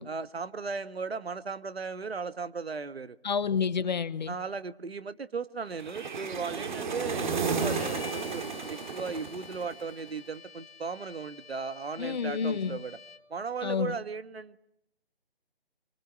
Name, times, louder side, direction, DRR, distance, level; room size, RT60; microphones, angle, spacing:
voice 1, 0.0-3.2 4.3-13.0 13.3-14.6, right 5 dB, 80° right, 1.6 m, -37 dB
voice 2, 3.2-4.3 12.0-12.8 13.6-14.0, left 6 dB, 45° left, 1.1 m, -29 dB
sound 1, 5.8-10.0, right 5 dB, 50° right, 2.2 m, -33 dB
Bowed string instrument, 7.6-13.4, left 5 dB, 75° left, 2.3 m, -47 dB
25.0 x 24.0 x 9.1 m
hypercardioid pair, 160°, 30 cm